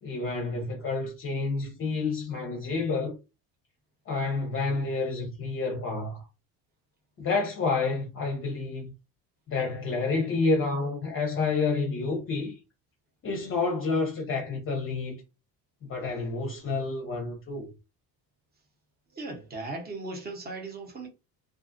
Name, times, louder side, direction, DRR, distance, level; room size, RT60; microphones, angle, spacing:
voice 1, 0.0-3.2 4.1-6.3 7.2-8.9 9.5-12.6 13.2-15.2 15.8-17.7, left 3 dB, 35° left, 0.5 m, -29 dB
voice 2, 19.1-21.1, right 2 dB, 25° right, 0.8 m, -37 dB
2.5 x 2.3 x 2.5 m
cardioid pair, 125°, 38 cm